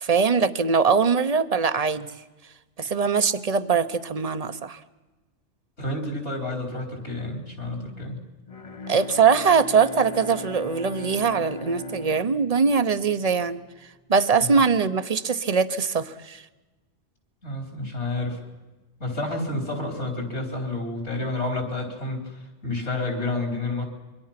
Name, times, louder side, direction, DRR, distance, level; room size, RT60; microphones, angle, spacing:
voice 1, 0.0-2.1 2.8-4.8 8.9-13.6 14.1-16.4, right 5 dB, 35° right, 13 dB, 0.9 m, -22 dB
voice 2, 5.8-8.2 14.4-14.5 17.4-18.4 19.0-23.9, left 2 dB, 70° left, 3 dB, 4.6 m, -30 dB
Bowed string instrument, 8.5-13.4, left 2 dB, 35° left, 0.8 m, -38 dB
27.0 x 23.5 x 5.9 m, 1.2 s
omnidirectional pair, 1.2 m